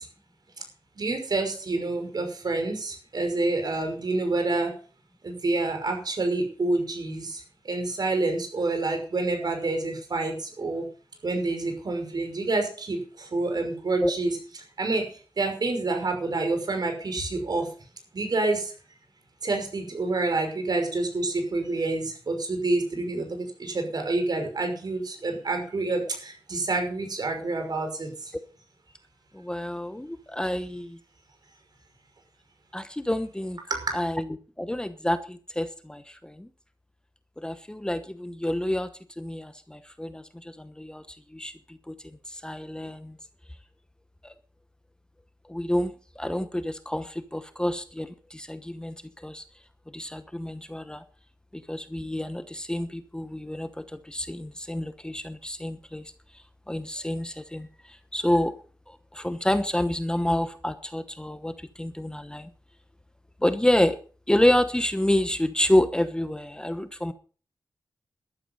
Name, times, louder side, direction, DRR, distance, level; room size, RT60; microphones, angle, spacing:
voice 1, 1.0-4.7 5.2-7.4 7.7-10.8 11.2-13.0 13.3-14.4 14.8-15.0 15.4-17.7 18.1-18.7 19.4-28.1 33.7-33.9, right 2 dB, 60° right, 4 dB, 5.6 m, -28 dB
voice 2, 29.3-31.0 32.7-33.6 33.9-34.3 34.6-36.5 37.4-38.9 39.2-42.0 42.3-43.2 44.2-44.3 45.5-49.4 49.9-51.0 51.5-56.1 56.7-58.6 58.9-62.5 63.4-64.0 64.3-67.1, left 1 dB, 10° left, 10 dB, 1.0 m, -28 dB
12.5 x 12.5 x 5.5 m, 0.39 s
wide cardioid pair, 95°, 8 cm